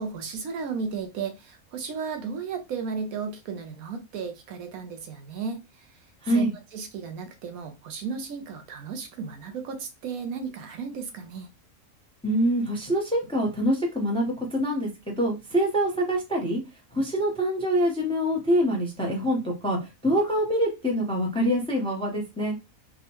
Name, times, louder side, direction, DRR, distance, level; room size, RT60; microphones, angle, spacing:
voice 1, 0.0-5.6 6.3-6.5 6.7-11.5, right 5 dB, 85° right, 1.1 m, -34 dB
voice 2, 12.2-16.6 16.9-19.8 20.0-22.6, equal, 5° left, 0.6 m, -25 dB
3.6 x 2.1 x 2.9 m
omnidirectional pair, 1.4 m